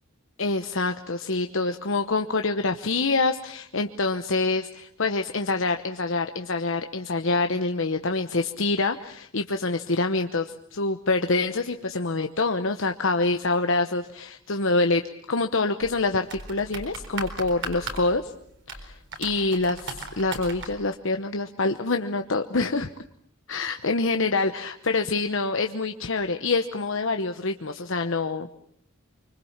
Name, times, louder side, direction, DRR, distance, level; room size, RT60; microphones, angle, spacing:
voice 1, 0.4-18.3 18.7-22.9 23.5-28.5, left 3 dB, 60° left, 7 dB, 1.0 m, -26 dB
sound 1, 15.8-20.8, right 3 dB, 55° right, 4.2 m, -38 dB
25.5 x 25.0 x 7.3 m, 0.67 s
head